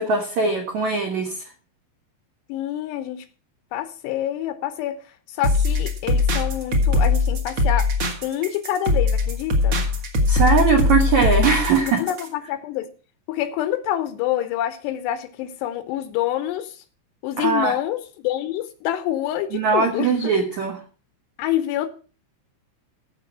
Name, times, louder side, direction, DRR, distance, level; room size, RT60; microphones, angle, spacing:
voice 1, 0.0-1.4 10.3-12.0 17.4-17.7 19.5-20.8, right 5 dB, 70° right, 3 dB, 1.8 m, -20 dB
voice 2, 2.5-3.3 3.7-5.0 5.3-7.9 8.2-9.8 11.8-12.9 13.3-16.8 17.2-20.1 21.4-21.9, left 12 dB, 80° left, 11 dB, 2.7 m, -27 dB
sound 1, 5.4-12.3, left 3 dB, 45° right, 1.9 m, -21 dB
15.0 x 5.8 x 5.9 m, 0.38 s
omnidirectional pair, 5.2 m